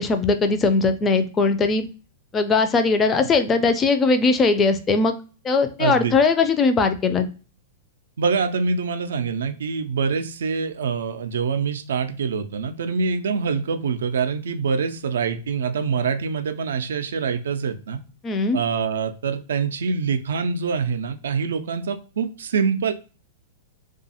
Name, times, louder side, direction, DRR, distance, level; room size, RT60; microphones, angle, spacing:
voice 1, 0.0-1.9 2.3-5.2 5.4-7.3 18.2-18.6, left 4 dB, 25° left, 8 dB, 0.4 m, -20 dB
voice 2, 5.8-6.1 8.2-18.0 18.5-22.9, right 5 dB, 70° right, 9 dB, 0.3 m, -25 dB
2.5 x 2.3 x 2.7 m, 0.35 s
figure-of-eight pair, 100°, 0 cm